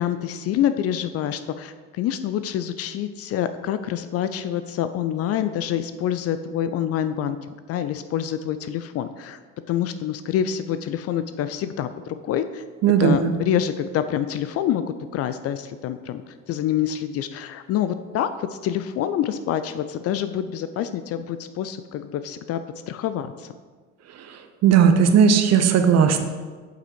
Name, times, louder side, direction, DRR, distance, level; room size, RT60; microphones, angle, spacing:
voice 1, 0.0-7.4 7.7-9.4 9.7-12.6 13.0-16.2 16.5-18.3 18.6-22.6 22.9-23.5, left 10 dB, 40° left, 11 dB, 0.5 m, -26 dB
voice 2, 12.8-13.3 24.6-26.3, right 7 dB, 45° right, 8 dB, 0.9 m, -16 dB
8.0 x 5.6 x 4.6 m, 1.5 s
figure-of-eight pair, 60°, 37 cm